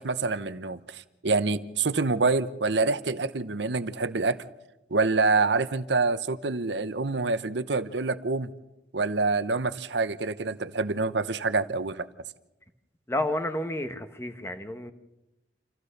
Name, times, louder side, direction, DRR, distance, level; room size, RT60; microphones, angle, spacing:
voice 1, 0.0-4.4 4.9-8.5 8.9-12.1, right 3 dB, 70° right, 14 dB, 0.9 m, -26 dB
voice 2, 13.1-14.9, left 1 dB, 15° left, 8 dB, 1.2 m, -30 dB
27.5 x 15.5 x 6.6 m, 0.95 s
head